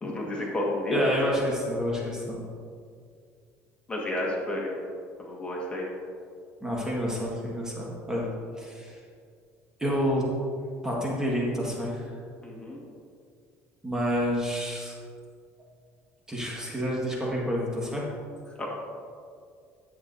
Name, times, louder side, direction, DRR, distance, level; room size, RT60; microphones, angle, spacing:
voice 1, 0.0-1.1 3.9-4.7 5.2-5.9 12.4-12.8 18.6-18.7, left 1 dB, 20° left, -3 dB, 1.7 m, -30 dB
voice 2, 0.9-2.4 6.6-8.3 8.6-9.0 9.8-10.2 10.8-12.0 13.8-14.9 16.3-18.1, equal, 10° right, -4 dB, 1.7 m, -29 dB
10.5 x 8.5 x 2.7 m, 2.2 s
cardioid pair, 115°, 6 cm